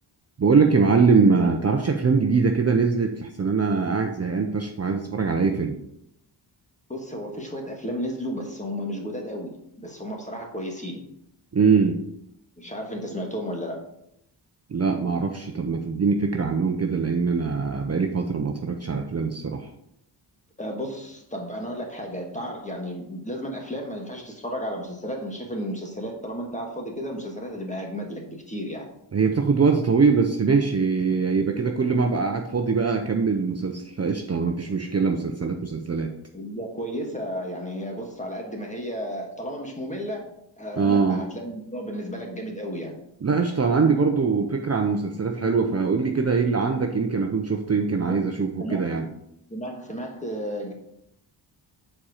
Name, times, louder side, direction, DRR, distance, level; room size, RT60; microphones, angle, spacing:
voice 1, 0.4-5.8 11.5-12.0 14.7-19.7 29.1-36.1 40.8-41.2 43.2-49.1, right 5 dB, 35° right, 3 dB, 0.6 m, -22 dB
voice 2, 6.9-11.0 12.6-13.8 20.6-28.9 36.3-43.0 48.0-48.2 48.6-48.9 49.5-50.7, equal, 15° left, 1 dB, 1.4 m, -33 dB
7.3 x 4.4 x 4.9 m, 0.77 s
wide cardioid pair, 140°, 48 cm